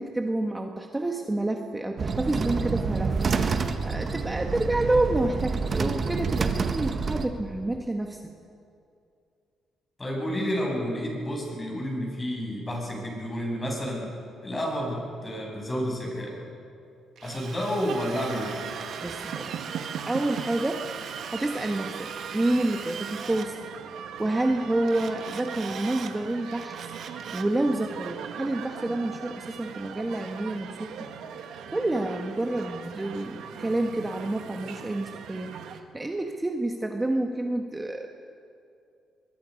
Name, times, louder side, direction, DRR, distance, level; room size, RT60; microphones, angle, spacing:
voice 1, 0.0-3.2 3.5-8.2 19.0-19.6 20.1-23.6 24.2-31.1 31.4-38.1, right 2 dB, 15° right, 3 dB, 1.4 m, -29 dB
sound 1, 2.0-7.3, right 5 dB, 45° right, 1.5 m, -28 dB
voice 2, 10.0-14.1 14.4-16.4 17.2-18.6, equal, 20° left, -1 dB, 7.5 m, -30 dB
Drill, 17.2-23.5 24.9-26.1 26.5-27.5, right 7 dB, 65° right, 1.6 m, -40 dB
sound 2, 17.9-35.8, right 7 dB, 80° right, 1.5 m, -40 dB
23.0 x 22.5 x 5.3 m, 2.5 s
cardioid pair, 90°, 0 cm